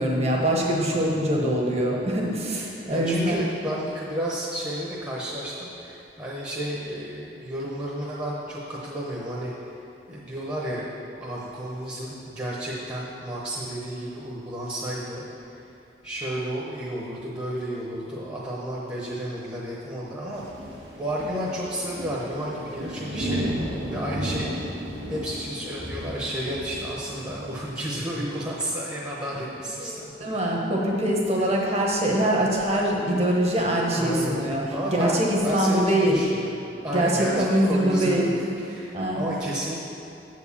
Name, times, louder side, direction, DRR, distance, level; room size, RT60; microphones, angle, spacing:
voice 1, 0.0-3.4 29.8-36.2 36.9-38.3 38.9-39.2, right 1 dB, 35° right, -2 dB, 1.2 m, -23 dB
voice 2, 0.9-1.2 2.9-9.8 10.1-10.9 11.2-15.6 16.0-20.4 21.0-24.7 25.1-30.1 31.4-31.5 33.9-34.4 34.7-36.6 36.8-39.8, equal, 20° right, -5 dB, 0.9 m, -32 dB
sound 1, 20.3-27.7, equal, 80° right, 1.6 m, -34 dB
7.8 x 4.7 x 7.0 m, 2.7 s
head